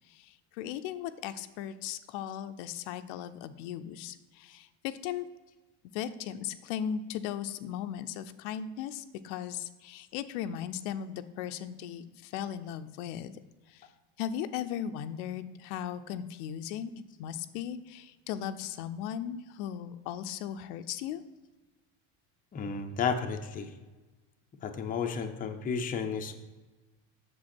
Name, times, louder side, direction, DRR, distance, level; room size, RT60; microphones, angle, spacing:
voice 1, 0.1-5.3 5.9-13.3 13.7-13.9 14.2-16.9 17.2-21.2, left 9 dB, 85° left, 10 dB, 0.7 m, -37 dB
voice 2, 22.5-23.7 24.6-26.3, left 6 dB, 20° left, 4 dB, 0.6 m, -32 dB
7.7 x 6.9 x 4.3 m, 1.2 s
cardioid pair, 150°, 42 cm